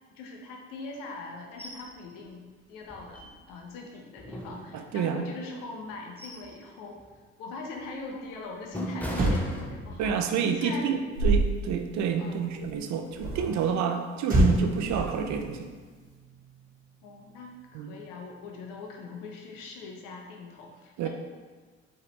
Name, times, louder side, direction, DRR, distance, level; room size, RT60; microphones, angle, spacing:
voice 1, 0.1-7.0 7.4-10.1 10.6-10.9 12.2-12.5 17.0-21.1, left 3 dB, 75° left, 1 dB, 0.8 m, -41 dB
sound 1, 1.6-1.9 2.3-2.4 2.8-3.7 4.2-5.2 5.8-6.6 7.0-7.2 7.8-10.2 10.6-10.8, equal, 5° left, 0.8 m, -40 dB
voice 2, 4.7-5.2 10.0-15.7 17.7-17.9 21.0-21.1, right 6 dB, 55° right, 5 dB, 0.6 m, -29 dB
Motor vehicle (road), 8.7-8.8 9.1-12.6 14.2-16.8 17.1-17.4, right 1 dB, 25° right, 1.0 m, -29 dB
sound 2, 11.1-11.5 12.6-12.8 13.1-13.6 14.7-15.4, right 3 dB, 75° right, 1.3 m, -28 dB
4.7 x 3.2 x 3.2 m, 1.5 s
hypercardioid pair, 55°, 33 cm